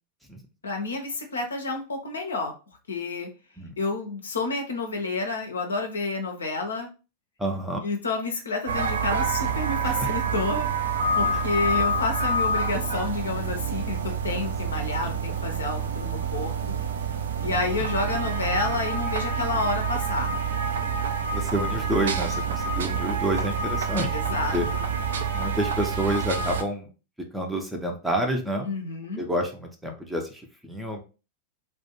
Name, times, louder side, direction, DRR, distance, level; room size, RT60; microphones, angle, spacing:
voice 1, 0.6-2.5 2.9-3.3 3.8-6.9 7.8-10.9 11.2-14.0 14.2-16.5 17.4-20.4 24.1-24.9 28.6-29.2, left 3 dB, 70° left, 3 dB, 0.5 m, -29 dB
voice 2, 7.4-7.8 9.8-10.1 11.3-11.4 14.7-14.9 17.5-17.6 21.3-24.2 24.5-24.7 25.3-26.9 27.3-28.7 29.2-31.0, right 1 dB, 5° right, 2 dB, 0.5 m, -29 dB
sound 1, 8.7-26.6, right 4 dB, 65° right, 0.3 m, -27 dB
2.3 x 2.2 x 2.8 m, 0.33 s
figure-of-eight pair, 90°, 0 cm